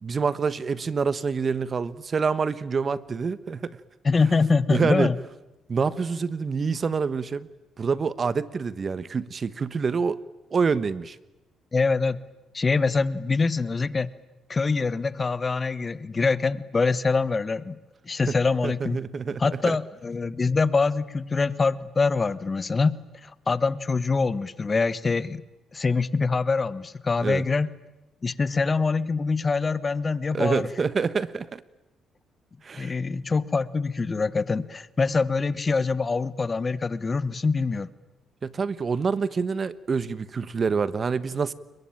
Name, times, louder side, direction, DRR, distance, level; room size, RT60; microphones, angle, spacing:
voice 1, 0.0-3.8 4.7-5.1 5.7-7.5 7.8-10.2 10.5-11.2 18.3-18.4 18.6-19.8 27.2-27.4 30.3-31.6 32.6-32.9 38.4-41.5, right 5 dB, 40° right, 17 dB, 1.2 m, -26 dB
voice 2, 4.0-5.1 11.7-12.2 12.5-14.1 14.5-17.8 18.1-19.0 19.4-22.9 23.2-25.4 25.7-27.7 28.2-30.6 32.8-37.9, left 4 dB, 30° left, 17 dB, 1.1 m, -24 dB
29.5 x 22.5 x 8.9 m, 0.98 s
cardioid pair, 90°, 0 cm